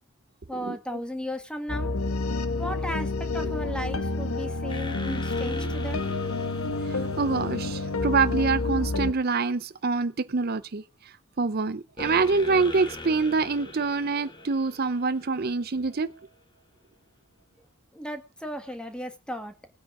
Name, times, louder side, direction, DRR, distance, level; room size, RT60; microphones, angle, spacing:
voice 1, 0.5-1.9 2.6-6.0 17.9-19.5, equal, 5° left, 1.6 m, -35 dB
sound 1, 1.7-9.1, left 3 dB, 85° left, 1.1 m, -29 dB
sound 2, 4.7-8.4 12.0-15.9, left 1 dB, 20° left, 1.4 m, -40 dB
voice 2, 6.9-16.1, right 4 dB, 45° right, 0.6 m, -26 dB
19.0 x 9.5 x 4.9 m
head